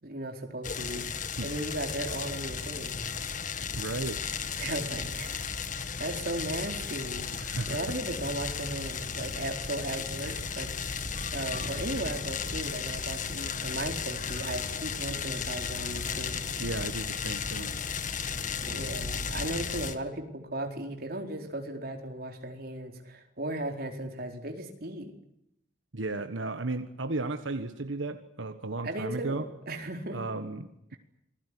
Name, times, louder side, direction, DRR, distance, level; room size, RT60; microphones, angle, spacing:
voice 1, 0.0-3.1 4.6-5.3 5.6-7.3 7.7-10.7 11.3-16.4 18.6-25.1 28.8-30.2, right 1 dB, 50° right, 4 dB, 4.4 m, -36 dB
sound 1, 0.6-19.9, left 6 dB, 40° left, 1.8 m, -34 dB
voice 2, 3.6-4.2 7.4-8.0 16.6-17.7 25.9-29.4 30.1-31.0, right 2 dB, 90° right, 9 dB, 1.5 m, -34 dB
27.5 x 20.5 x 10.0 m, 0.80 s
head